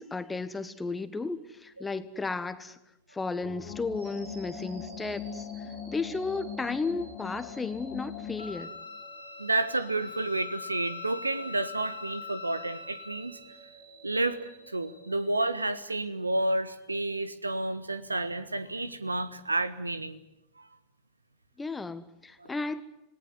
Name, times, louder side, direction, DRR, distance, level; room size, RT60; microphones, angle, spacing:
voice 1, 0.0-2.8 3.1-5.5 5.9-8.7 21.6-22.8, left 3 dB, 10° left, 13 dB, 1.5 m, -34 dB
sound 1, 3.4-8.7, left 7 dB, 45° left, 2.2 m, -41 dB
sound 2, 3.9-16.1, right 3 dB, 60° right, 6.6 m, -53 dB
Wind instrument woodwind instrument, 8.4-13.5, left 5 dB, 80° left, 1.8 m, -42 dB
voice 2, 9.4-13.4 14.0-14.4 14.7-20.2 22.4-22.5, right 2 dB, 80° right, 15 dB, 1.4 m, -30 dB
27.0 x 19.0 x 9.7 m, 0.91 s
figure-of-eight pair, 90°, 0 cm